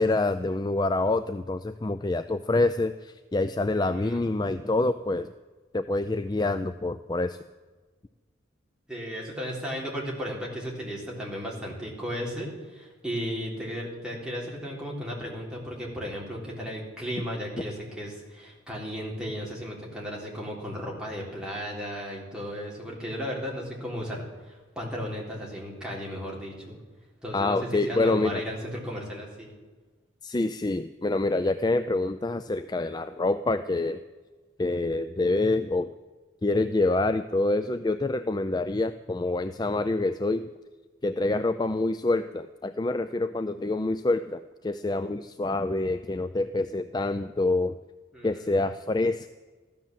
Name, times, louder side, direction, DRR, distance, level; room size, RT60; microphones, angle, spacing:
voice 1, 0.0-5.3 5.7-7.4 27.3-28.4 30.2-34.0 34.6-35.9 36.4-40.5 41.0-47.8 48.2-49.3, left 2 dB, 20° left, 10 dB, 0.4 m, -26 dB
voice 2, 3.7-4.2 8.9-26.8 27.2-29.6 48.1-48.7, equal, 5° right, -3 dB, 3.6 m, -35 dB
15.0 x 12.5 x 7.5 m, 1.3 s
head